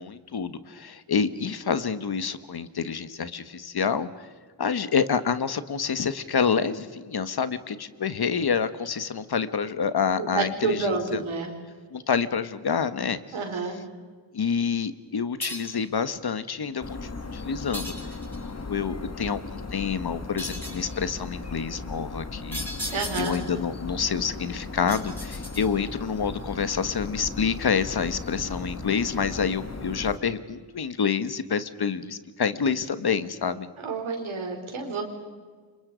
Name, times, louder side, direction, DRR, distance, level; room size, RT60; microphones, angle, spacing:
voice 1, 0.0-4.3 4.6-11.2 11.9-13.2 14.3-17.9 18.4-22.7 23.2-33.7, left 6 dB, 55° left, 12 dB, 1.4 m, -28 dB
voice 2, 10.2-11.5 13.3-13.8 22.9-23.4 33.8-35.0, right 4 dB, 85° right, 2 dB, 5.3 m, -29 dB
sound 1, 15.4-15.9 17.7-18.5 20.4-20.9 22.5-23.6 24.9-25.9, equal, 5° left, 7.4 m, -36 dB
sound 2, 16.8-30.2, left 3 dB, 30° left, 2.1 m, -37 dB
30.0 x 26.5 x 5.1 m, 1.5 s
wide cardioid pair, 110°, 47 cm